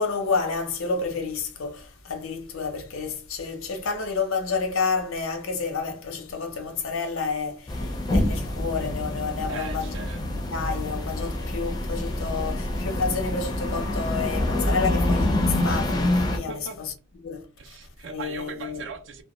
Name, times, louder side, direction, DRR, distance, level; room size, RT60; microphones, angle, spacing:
voice 1, 0.0-9.9 10.5-16.5 17.2-17.4 18.1-18.8, left 4 dB, 80° left, 0.6 m, -29 dB
sound 1, 7.7-16.4, left 1 dB, 20° left, 0.4 m, -26 dB
voice 2, 9.5-10.2 14.8-14.9 16.5-16.8 17.6-19.2, right 5 dB, 60° right, 0.4 m, -39 dB
2.2 x 2.1 x 2.9 m
head